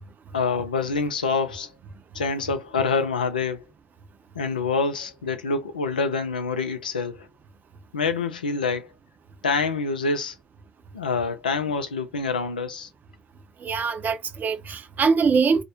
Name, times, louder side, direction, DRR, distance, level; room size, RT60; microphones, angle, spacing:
voice 1, 0.3-1.7 2.1-3.6 4.4-7.3 7.9-8.9 9.4-10.3 10.9-12.9, left 4 dB, 85° left, 0.4 m, -26 dB
voice 2, 13.6-15.6, right 5 dB, 40° right, 0.6 m, -23 dB
2.5 x 2.1 x 2.6 m
figure-of-eight pair, 50°, 5 cm